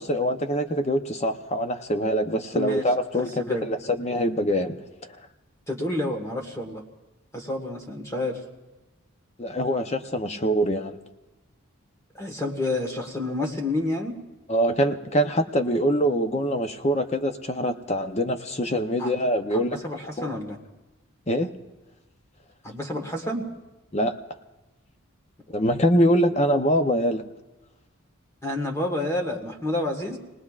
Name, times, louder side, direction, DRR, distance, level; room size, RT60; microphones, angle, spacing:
voice 1, 0.0-4.8 9.4-11.0 14.5-19.8 20.2-20.3 21.3-21.5 23.9-24.2 25.5-27.2, equal, 30° left, 7 dB, 0.7 m, -24 dB
voice 2, 2.5-2.8 3.2-3.6 5.7-6.8 7.3-8.4 12.1-14.2 19.0-19.1 19.5-20.6 22.6-23.4 28.4-30.2, left 2 dB, 15° left, 2 dB, 1.5 m, -29 dB
28.5 x 19.0 x 2.4 m, 1.1 s
head